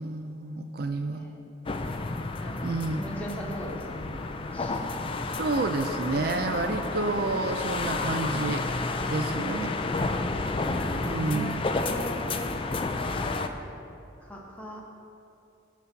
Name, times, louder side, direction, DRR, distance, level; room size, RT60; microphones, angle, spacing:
voice 1, 0.0-1.3 2.6-3.0 5.4-8.6 9.1-9.7 11.0-11.5, right 3 dB, 50° right, 6 dB, 0.4 m, -29 dB
voice 2, 1.1-1.5 2.4-4.8 9.1-10.2 10.7-12.6 13.1-13.8 14.2-14.8, equal, 5° left, -2 dB, 1.1 m, -40 dB
sound 1, 1.7-13.5, left 3 dB, 25° left, 0.4 m, -31 dB
12.0 x 4.1 x 7.2 m, 2.9 s
head